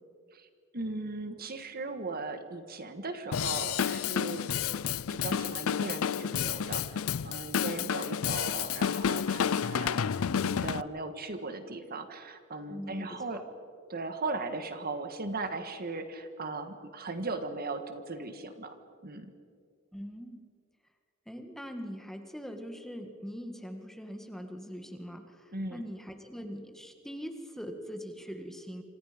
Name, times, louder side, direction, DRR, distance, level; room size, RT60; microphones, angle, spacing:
voice 1, 0.7-4.5 5.1-13.4 13.9-18.7 19.0-19.3 25.5-25.8, right 3 dB, 45° right, 8 dB, 1.7 m, -38 dB
Drum kit / Drum, 3.3-10.8, left 8 dB, 90° left, 0.5 m, -30 dB
voice 2, 12.7-13.4 19.9-20.4 21.3-28.8, equal, ahead, 5 dB, 1.8 m, -42 dB
27.0 x 27.0 x 5.2 m, 2.2 s
head